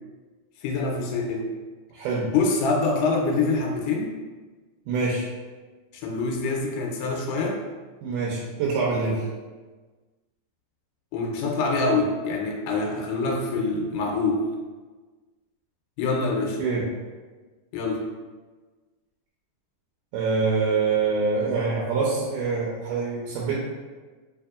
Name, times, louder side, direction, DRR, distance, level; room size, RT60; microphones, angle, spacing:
voice 1, 0.6-1.5 2.3-4.1 5.9-7.6 11.1-14.4 16.0-16.6 17.7-18.1, left 3 dB, 90° left, 0 dB, 2.1 m, -25 dB
voice 2, 1.9-2.3 4.9-5.3 8.0-9.2 16.6-16.8 20.1-23.5, right 4 dB, 90° right, -5 dB, 2.1 m, -25 dB
4.8 x 2.7 x 2.3 m, 1.3 s
omnidirectional pair, 3.6 m